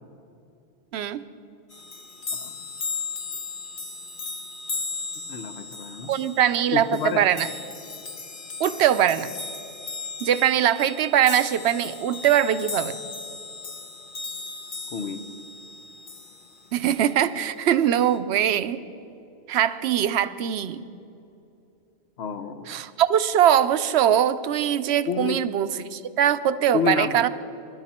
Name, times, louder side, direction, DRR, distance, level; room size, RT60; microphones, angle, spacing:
sound 1, 1.7-16.7 17.9-18.2, left 4 dB, 55° left, 1.1 m, -36 dB
voice 1, 5.3-6.1 6.7-7.2 14.9-15.2 22.2-22.8 25.1-25.4 26.7-27.3, left 6 dB, 80° left, 10 dB, 1.1 m, -29 dB
voice 2, 6.1-7.5 8.6-9.3 10.2-12.9 16.7-18.8 19.5-20.8 22.7-27.3, right 10 dB, 85° right, 13 dB, 0.9 m, -22 dB
21.5 x 12.0 x 4.2 m, 2.9 s
omnidirectional pair, 1.1 m